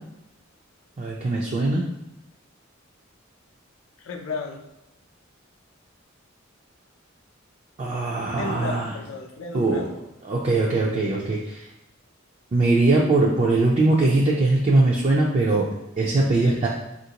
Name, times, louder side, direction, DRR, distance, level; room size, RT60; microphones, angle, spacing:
voice 1, 1.0-1.8 7.8-8.9 9.5-9.9 10.2-11.7 12.5-15.7 16.0-16.7, right 2 dB, 35° right, -3 dB, 0.4 m, -21 dB
voice 2, 4.0-4.6 8.3-9.9 16.3-16.7, left 4 dB, 90° left, 3 dB, 0.5 m, -34 dB
3.6 x 2.5 x 2.8 m, 0.90 s
head